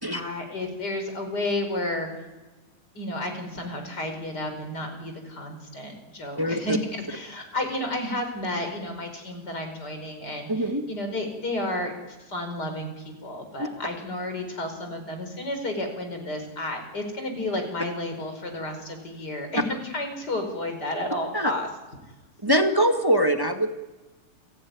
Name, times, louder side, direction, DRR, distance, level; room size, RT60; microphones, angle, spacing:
voice 1, 0.1-2.1 3.0-21.7, left 1 dB, 30° left, 5 dB, 5.5 m, -32 dB
voice 2, 6.4-6.8 10.5-10.8 21.3-21.5 22.4-23.7, equal, 10° right, 5 dB, 1.1 m, -22 dB
29.5 x 17.5 x 9.6 m, 1.2 s
omnidirectional pair, 3.6 m